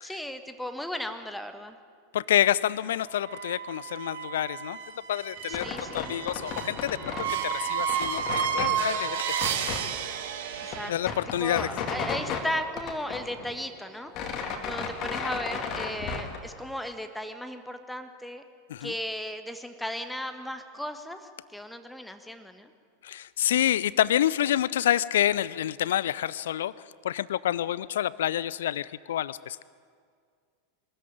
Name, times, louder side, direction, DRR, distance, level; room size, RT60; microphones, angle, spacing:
voice 1, 0.0-1.8 5.5-6.1 10.6-10.9 11.4-14.1 14.7-18.4 18.8-21.2 21.5-22.7, left 1 dB, 5° left, 8 dB, 1.4 m, -36 dB
voice 2, 2.1-4.8 5.1-7.0 7.4-9.2 10.6-11.7 18.7-18.9 23.0-26.7 27.0-29.6, left 11 dB, 60° left, 20 dB, 0.5 m, -28 dB
sound 1, 3.2-10.9, right 8 dB, 60° right, 1.6 m, -32 dB
sound 2, 5.4-7.3 7.6-8.7 9.3-9.8 10.3-10.4 10.6-12.5 12.8-13.7 13.9-16.4, left 5 dB, 40° left, 2.6 m, -34 dB
22.5 x 13.5 x 9.1 m, 2.1 s
figure-of-eight pair, 85°, 0 cm